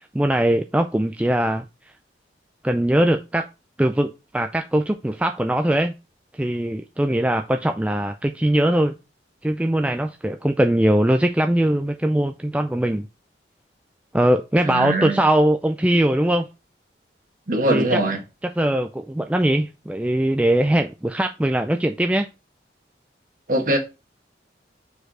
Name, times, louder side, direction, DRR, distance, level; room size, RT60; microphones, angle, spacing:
voice 1, 0.1-1.6 2.6-3.5 3.8-5.9 6.4-8.9 9.4-13.1 14.1-16.5 17.7-18.0 18.6-22.3, right 1 dB, 5° right, 0.3 m, -21 dB
voice 2, 14.6-15.2 17.5-18.2 23.5-23.8, right 1 dB, 50° right, 1.6 m, -22 dB
4.7 x 4.5 x 4.8 m
head